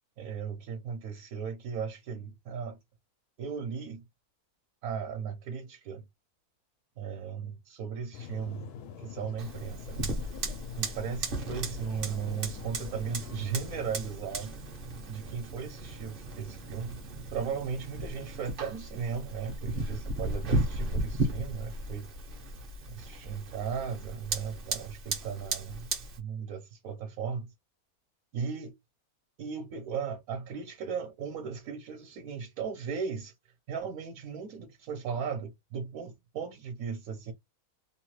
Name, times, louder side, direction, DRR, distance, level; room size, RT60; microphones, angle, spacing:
voice 1, 0.2-2.8 3.4-4.0 4.8-6.0 7.0-8.7 9.0-10.2 10.8-14.6 15.1-17.0 17.3-22.1 22.9-25.9 26.2-27.5 28.3-28.7 29.4-33.3 33.7-37.3, right 6 dB, 70° right, 1.1 m, -36 dB
sound 1, 8.1-13.9, left 8 dB, 85° left, 1.1 m, -45 dB
Fire, 9.4-26.2, right 2 dB, 45° right, 0.8 m, -36 dB
2.8 x 2.2 x 3.0 m
omnidirectional pair, 1.6 m